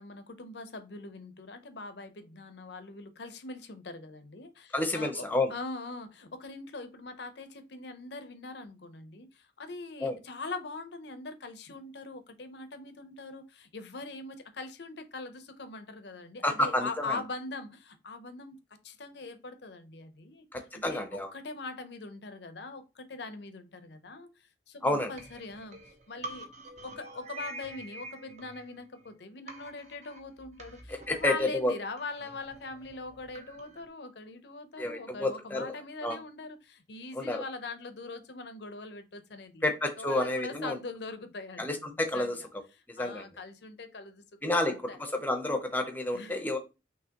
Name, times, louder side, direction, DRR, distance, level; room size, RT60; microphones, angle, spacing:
voice 1, 0.0-18.6 18.8-20.5 20.7-21.0 21.3-24.3 24.7-25.8 26.1-26.5 26.8-39.7 40.0-42.4 43.0-44.2 44.5-45.0 46.1-46.4, left 3 dB, 65° left, 0.7 m, -42 dB
voice 2, 4.7-5.5 10.0-10.2 16.4-17.2 20.5-21.3 24.8-25.1 30.9-31.7 34.8-35.7 36.0-36.2 37.1-37.4 39.6-40.8 41.6-42.4 42.9-43.3 44.4-46.6, left 1 dB, 10° left, 0.7 m, -30 dB
sound 1, 25.2-29.1 29.5-33.9, right 2 dB, 35° right, 0.9 m, -47 dB
Mallet percussion, 26.6-30.1, left 3 dB, 55° right, 1.5 m, -58 dB
6.1 x 2.8 x 2.9 m
head